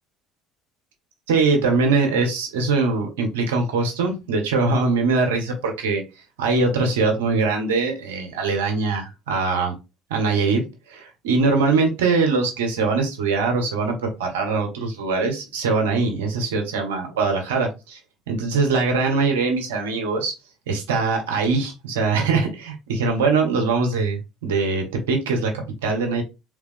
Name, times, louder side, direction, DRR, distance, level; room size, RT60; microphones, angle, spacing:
voice 1, 1.3-6.0 6.4-9.7 10.1-18.0 18.3-20.3 20.7-26.2, right 4 dB, 80° right, 1.4 m, -22 dB
3.8 x 3.6 x 3.4 m
hypercardioid pair, 60°, 0 cm